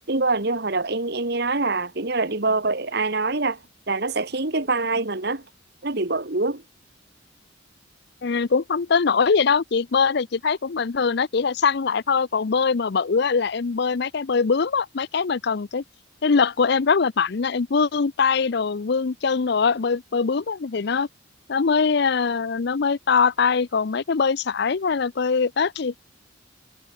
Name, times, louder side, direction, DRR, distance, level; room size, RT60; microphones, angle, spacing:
voice 1, 0.1-3.6 3.9-5.4 5.8-6.6, right 3 dB, 55° right, 1.9 m, -24 dB
voice 2, 8.2-15.8 16.2-21.1 21.5-26.0, left 5 dB, 55° left, 0.5 m, -22 dB
head